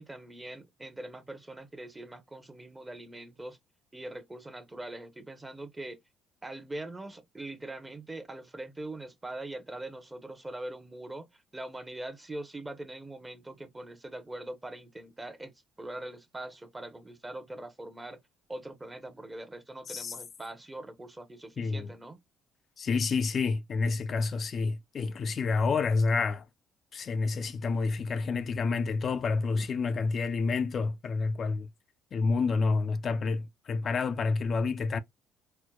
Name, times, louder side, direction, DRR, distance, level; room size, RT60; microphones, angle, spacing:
voice 1, 0.0-3.6 3.9-6.0 6.4-15.5 15.8-18.2 18.5-22.2, right 1 dB, 15° right, 0.8 m, -42 dB
voice 2, 21.6-21.9 22.8-26.4 26.9-31.7 32.1-35.0, left 4 dB, 50° left, 0.3 m, -29 dB
4.4 x 2.1 x 2.2 m
supercardioid pair, 80°, 0 cm